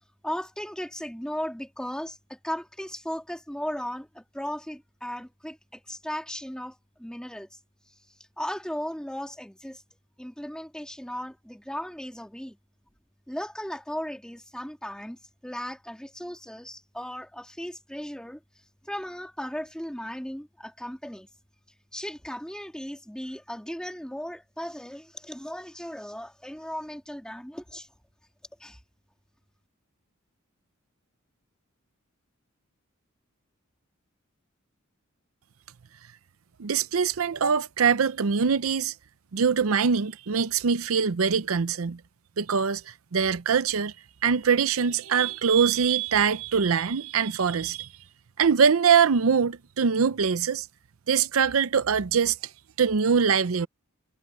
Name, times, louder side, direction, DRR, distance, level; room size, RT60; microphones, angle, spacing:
voice 1, 0.2-7.5 8.4-9.8 10.2-12.6 13.3-18.4 18.8-21.3 21.9-27.9 28.6-28.8, equal, 5° left, 2.3 m, -36 dB
voice 2, 36.6-38.9 39.3-42.0 42.4-43.9 44.2-47.9 48.4-50.7 51.1-52.4 52.8-53.7, right 6 dB, 90° right, 0.6 m, -23 dB
head